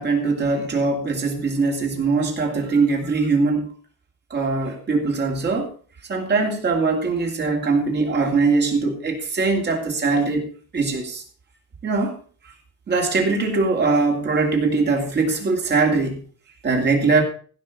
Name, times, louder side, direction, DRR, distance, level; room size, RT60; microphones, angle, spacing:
voice 1, 0.0-3.7 4.3-5.7 6.1-10.5 10.7-11.2 11.8-12.1 12.9-16.2 16.6-17.2, right 4 dB, 35° right, 2 dB, 3.0 m, -21 dB
15.5 x 5.9 x 6.0 m, 0.42 s
cardioid pair, 160°, 32 cm